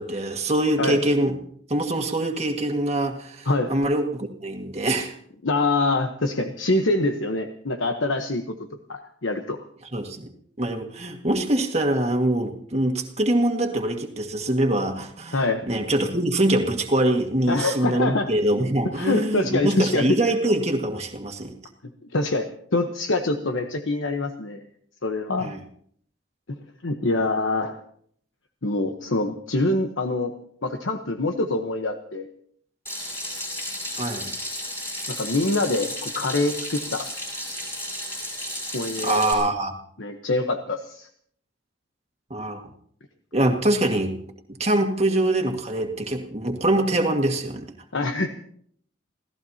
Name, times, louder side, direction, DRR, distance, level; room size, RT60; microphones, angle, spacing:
voice 1, 0.0-1.3 1.7-5.2 9.9-10.3 10.6-15.4 15.7-21.5 25.4-25.6 34.0-34.3 39.0-39.7 42.3-42.7 43.3-44.2 44.6-47.7, right 1 dB, 35° right, 2 dB, 1.9 m, -24 dB
voice 2, 5.4-8.5 8.9-9.6 15.3-15.6 17.5-18.3 19.0-20.1 22.1-24.7 25.0-25.5 26.5-26.6 26.8-27.8 28.6-30.3 30.6-32.3 35.1-37.1 38.7-39.4 40.0-41.1 47.9-48.3, left 2 dB, 80° left, 5 dB, 1.1 m, -25 dB
Water tap faucet / Sink (filling or washing), 32.9-39.3, left 1 dB, 15° left, 6.5 m, -33 dB
28.5 x 17.0 x 2.9 m, 0.64 s
head